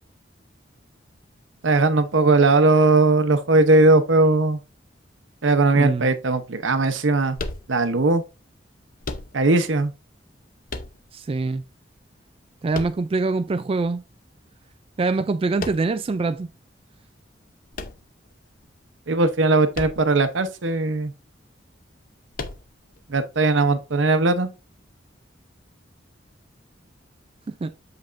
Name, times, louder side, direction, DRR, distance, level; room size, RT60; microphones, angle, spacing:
voice 1, 1.6-4.6 5.4-7.4 7.7-8.2 9.3-9.9 19.1-21.1 23.1-24.5, right 3 dB, 80° right, 0.8 m, -19 dB
voice 2, 5.7-6.1 11.1-11.6 12.6-14.0 15.0-16.5 27.6-27.7, right 3 dB, 30° right, 0.3 m, -24 dB
sound 1, 7.3-8.1 9.0-9.7 10.7-11.4 12.7-13.5 15.6-16.1 17.7-18.6 19.7-20.3 20.6-20.7 22.3-23.0, left 3 dB, 50° left, 0.7 m, -35 dB
7.0 x 5.3 x 2.5 m
head